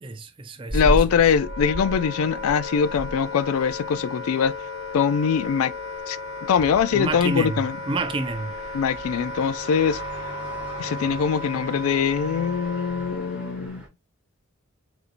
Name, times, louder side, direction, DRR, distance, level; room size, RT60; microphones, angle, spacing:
voice 1, 0.0-1.0 6.9-8.5, right 2 dB, 25° right, 0.4 m, -29 dB
voice 2, 0.7-4.5 4.9-5.7 6.1-6.2 6.5-7.8 8.7-10.0 10.8-13.8, left 7 dB, 75° left, 0.3 m, -22 dB
sound 1, 0.7-13.9, equal, 5° right, 1.0 m, -35 dB
Wind instrument woodwind instrument, 1.0-13.7, left 2 dB, 50° left, 0.7 m, -35 dB
4.1 x 2.7 x 2.5 m
head